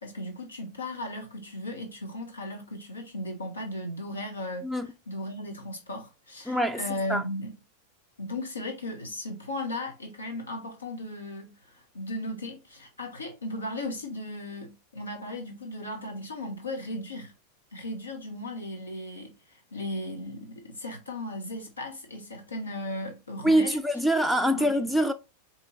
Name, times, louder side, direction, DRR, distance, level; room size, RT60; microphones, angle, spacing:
voice 1, 0.0-4.6 5.1-7.6 8.2-17.3 17.7-23.8 24.5-24.9, left 1 dB, 75° left, 1.1 m, -36 dB
voice 2, 6.5-6.8 7.1-7.2 23.4-25.1, equal, ahead, 0.4 m, -24 dB
4.4 x 3.0 x 3.9 m
figure-of-eight pair, 90°, 0 cm